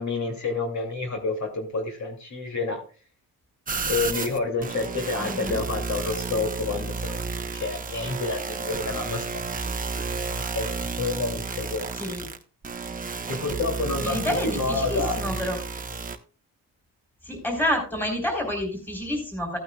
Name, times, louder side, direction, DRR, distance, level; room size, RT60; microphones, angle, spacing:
voice 1, 0.0-2.8 3.9-7.2 7.5-10.0 10.3-11.9 13.3-15.2 15.9-16.0, left 3 dB, 50° left, 2 dB, 2.8 m, -29 dB
sound 1, 3.7-16.2, right 4 dB, 25° right, 0.9 m, -32 dB
voice 2, 5.2-5.6 12.0-12.2 14.0-15.6 17.2-19.6, left 1 dB, 5° left, 2 dB, 3.6 m, -28 dB
15.0 x 9.2 x 2.4 m, 0.36 s
cardioid pair, 120°, 36 cm